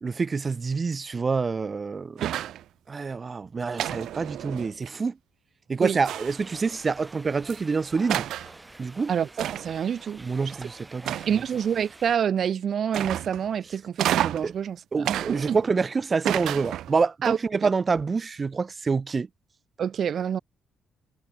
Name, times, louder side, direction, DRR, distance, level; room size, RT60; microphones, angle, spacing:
voice 1, 0.0-2.3 2.9-5.2 5.7-8.3 8.8-9.1 10.2-11.4 14.4-14.5 14.9-19.3, right 4 dB, 35° right, 2.2 m, -27 dB
sound 1, 2.2-2.6 3.8-4.9 6.0-6.6 7.5-7.6 8.1-8.5 9.4-9.8 11.0-11.6 12.9-13.5 14.0-14.5 15.0-15.8 16.2-17.0, right 12 dB, 75° right, 1.1 m, -30 dB
sound 2, 6.0-12.2, right 2 dB, 15° right, 7.6 m, -47 dB
voice 2, 9.1-10.2 11.3-15.2 15.5-15.6 17.2-17.7 19.8-20.4, right 8 dB, 55° right, 0.9 m, -27 dB
cardioid pair, 90°, 0 cm